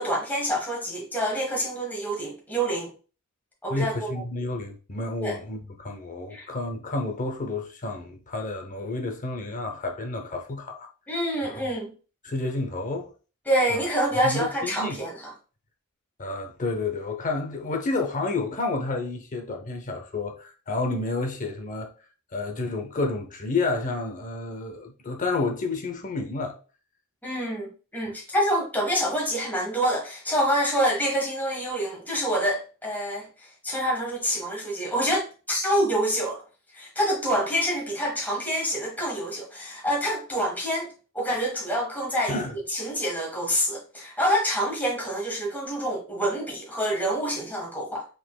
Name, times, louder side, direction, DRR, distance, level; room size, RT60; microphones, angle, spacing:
voice 1, 0.0-2.9 3.6-4.1 5.2-5.4 6.3-6.5 11.1-11.9 13.4-15.2 27.2-27.7 27.9-33.3 33.6-36.4 36.7-42.4 42.7-48.0, equal, 10° left, 1.3 m, -27 dB
voice 2, 3.7-10.9 11.5-11.7 12.2-13.1 13.7-13.8 14.2-15.0 16.2-21.9 22.3-26.6 42.3-42.5, left 3 dB, 35° left, 0.6 m, -30 dB
5.0 x 3.9 x 2.2 m
head